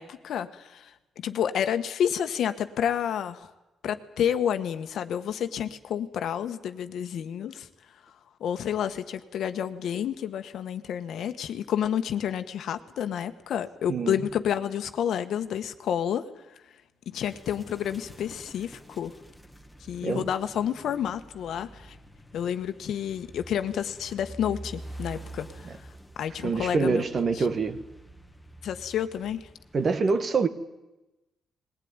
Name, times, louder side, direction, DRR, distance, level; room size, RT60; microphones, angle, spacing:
voice 1, 0.0-3.5 3.8-7.7 8.4-16.3 17.1-19.1 19.8-22.0 22.3-25.7 26.2-27.0 27.4-27.5 28.6-29.5, left 9 dB, 70° left, 1.3 m, -30 dB
sound 1, 17.1-29.9, right 1 dB, ahead, 1.8 m, -47 dB
voice 2, 26.4-27.8 29.7-30.5, right 4 dB, 40° right, 1.6 m, -25 dB
20.5 x 17.5 x 9.7 m
cardioid pair, 105°, 0 cm